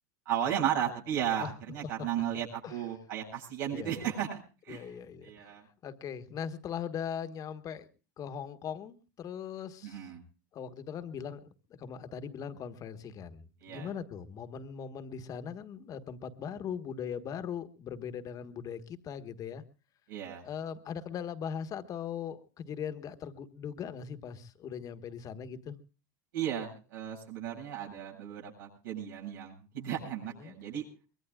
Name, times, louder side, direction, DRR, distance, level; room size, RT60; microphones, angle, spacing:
voice 1, 0.2-4.4 4.7-5.0 5.2-5.6 9.8-10.2 13.6-13.9 20.1-20.4 26.3-30.8, right 10 dB, 80° right, -2 dB, 8.0 m, -34 dB
voice 2, 3.7-4.1 4.7-5.6 5.8-7.9 8.2-10.1 10.5-11.4 11.8-19.6 20.4-25.8 30.4-30.5, left 8 dB, 35° left, 10 dB, 1.4 m, -40 dB
24.0 x 21.5 x 2.4 m, 0.34 s
supercardioid pair, 125°, 11 cm